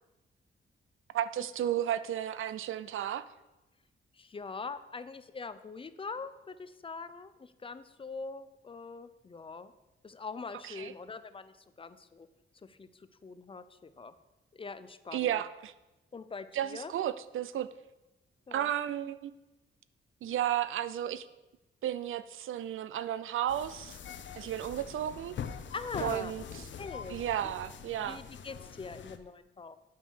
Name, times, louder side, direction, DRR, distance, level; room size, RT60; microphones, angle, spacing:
voice 1, 1.1-3.2 10.6-10.9 15.1-15.7 16.5-17.7 18.5-19.3 20.2-21.3 21.8-24.0 24.4-25.4 26.0-26.4 27.1-28.2, right 11 dB, 80° right, 15 dB, 0.5 m, -33 dB
voice 2, 4.1-9.7 10.0-12.3 12.6-14.1 14.5-15.4 16.1-16.9 18.5-18.7 25.7-26.3 26.7-27.5 28.0-29.8, left 4 dB, 25° left, 13 dB, 0.5 m, -43 dB
sound 1, 23.5-29.2, left 7 dB, 65° left, 0.7 m, -44 dB
8.6 x 5.6 x 7.3 m, 1.0 s
wide cardioid pair, 130°, 21 cm